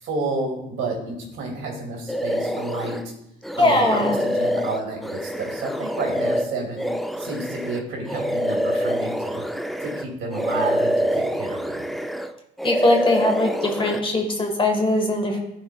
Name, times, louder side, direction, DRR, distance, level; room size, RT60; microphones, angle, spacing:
voice 1, 0.0-3.0 3.6-6.8 7.2-9.4 9.8-11.8, right 3 dB, 85° right, -1 dB, 2.3 m, -30 dB
sound 1, 2.1-3.0 3.4-10.1 10.3-12.3 12.6-14.0, equal, ahead, 0.4 m, -26 dB
voice 2, 3.6-4.2 12.6-15.4, left 2 dB, 25° left, 3 dB, 1.4 m, -21 dB
13.5 x 4.5 x 2.3 m, 0.83 s
cardioid pair, 90°, 20 cm